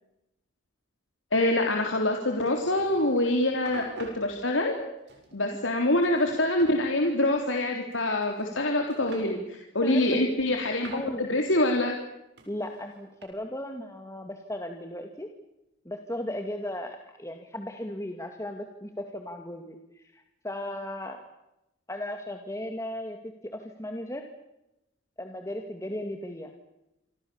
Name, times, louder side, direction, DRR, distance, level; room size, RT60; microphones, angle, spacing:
voice 1, 1.3-4.8 5.3-12.0, left 1 dB, 85° left, 2 dB, 3.8 m, -25 dB
sound 1, 2.5-3.3 3.7-4.3 5.1-5.8 6.0-6.8 7.9-8.6 8.9-9.3 10.1-11.1 12.4-13.2, right 2 dB, 60° right, 7.4 m, -47 dB
voice 2, 9.8-10.2 10.9-11.3 12.5-15.3 15.9-21.2 21.9-24.3 25.2-26.5, left 1 dB, 15° left, 4 dB, 2.2 m, -36 dB
28.5 x 25.0 x 7.2 m, 0.89 s
head